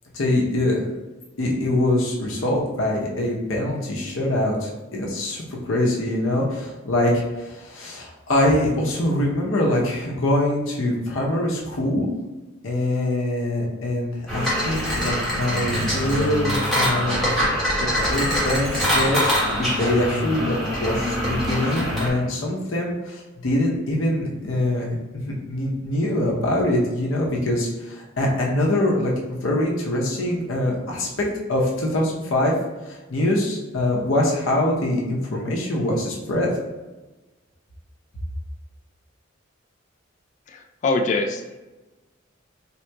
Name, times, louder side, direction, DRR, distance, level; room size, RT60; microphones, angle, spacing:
voice 1, 0.1-0.9 1.4-12.1 12.6-17.4 17.8-32.5 32.9-36.5, left 1 dB, 85° left, -2 dB, 0.8 m, -24 dB
sound 1, 14.3-22.1, equal, ahead, 1.3 m, -24 dB
voice 2, 40.5-41.6, left 3 dB, 40° left, 3 dB, 0.3 m, -24 dB
3.8 x 2.8 x 2.2 m, 1.1 s
head